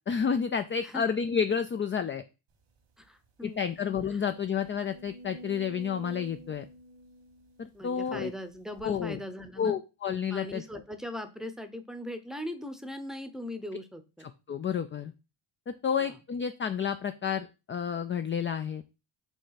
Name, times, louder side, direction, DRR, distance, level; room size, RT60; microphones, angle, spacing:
voice 1, 0.1-2.2 3.4-6.6 7.6-8.3 8.8-9.2 9.6-10.6 14.5-15.1 15.7-18.8, left 7 dB, 30° left, 9 dB, 0.3 m, -30 dB
sound 1, 2.8-2.9 3.2-3.3 3.9-8.1 8.8-8.9, right 1 dB, 85° right, 2.0 m, -48 dB
voice 2, 3.0-3.7 4.1-4.2 7.7-9.8 10.3-14.3 16.0-16.2, left 1 dB, ahead, 9 dB, 0.7 m, -40 dB
5.4 x 3.3 x 5.7 m, 0.30 s
cardioid pair, 105°, 48 cm